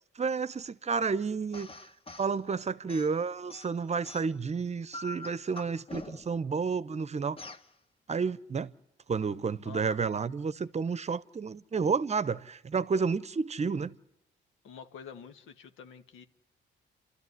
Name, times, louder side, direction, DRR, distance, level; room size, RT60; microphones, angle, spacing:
voice 1, 0.2-1.7 2.2-7.4 8.1-8.7 9.1-14.0, right 5 dB, 35° right, 0.8 m, -31 dB
sound 1, 1.5-2.3 2.9-4.5 4.9-6.4 7.4-7.7, left 2 dB, 30° left, 1.4 m, -45 dB
voice 2, 9.6-10.0 14.6-16.2, left 7 dB, 90° left, 1.7 m, -47 dB
29.5 x 13.5 x 9.6 m
cardioid pair, 90°, 20 cm